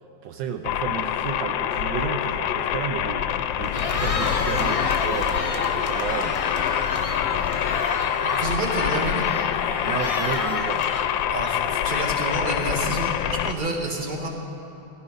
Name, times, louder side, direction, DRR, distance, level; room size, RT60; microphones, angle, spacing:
voice 1, 0.2-6.4 9.8-10.9, right 8 dB, 75° right, 6 dB, 1.3 m, -32 dB
sound 1, 0.6-13.5, left 10 dB, 85° left, 1.3 m, -26 dB
Cheering, 3.6-11.9, left 3 dB, 45° left, 0.4 m, -30 dB
voice 2, 8.2-9.2 11.3-14.3, right 2 dB, 25° right, 0 dB, 1.8 m, -29 dB
18.0 x 15.0 x 5.2 m, 2.9 s
omnidirectional pair, 2.0 m